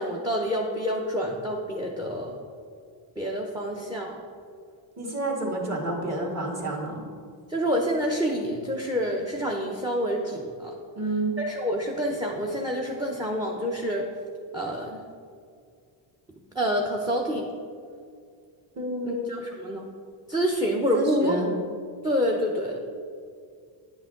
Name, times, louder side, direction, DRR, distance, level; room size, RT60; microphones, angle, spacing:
voice 1, 0.0-2.3 3.2-4.2 7.5-10.7 11.4-14.1 14.5-15.0 16.5-17.5 19.0-19.9 20.3-21.3 22.0-22.8, equal, 10° right, 0 dB, 0.7 m, -27 dB
voice 2, 5.0-7.0 11.0-11.3 18.8-19.2 20.9-21.5, right 2 dB, 30° right, 0 dB, 1.9 m, -29 dB
10.0 x 6.2 x 3.8 m, 2.2 s
cardioid pair, 100°, 49 cm